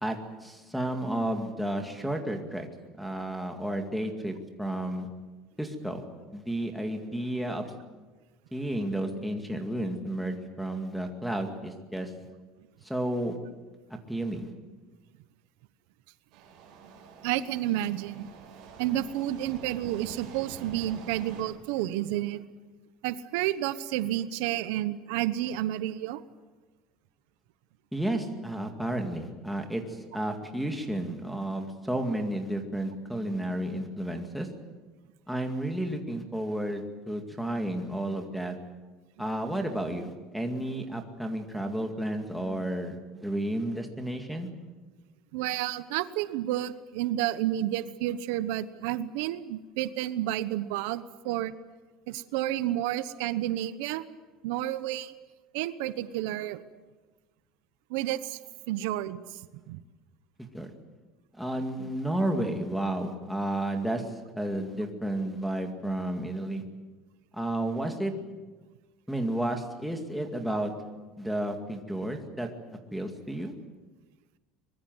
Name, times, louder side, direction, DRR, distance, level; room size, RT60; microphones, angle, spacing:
voice 1, 0.0-2.7 3.0-5.1 5.6-6.0 6.3-7.7 8.5-12.1 12.8-13.4 14.1-14.5 27.9-34.5 35.3-38.6 39.2-44.5 60.4-60.7 61.3-66.6 67.3-68.1 69.1-70.7 71.2-73.5, right 1 dB, ahead, 3 dB, 2.2 m, -32 dB
sound 1, 16.3-21.4, right 5 dB, 50° right, 7.2 m, -47 dB
voice 2, 17.2-18.3 18.8-22.4 23.0-26.2 45.3-51.5 52.1-54.0 54.4-55.1 55.5-56.6 57.9-58.4 58.7-59.8, right 13 dB, 85° right, 13 dB, 1.0 m, -30 dB
24.0 x 21.0 x 8.0 m, 1.2 s
cardioid pair, 170°, 0 cm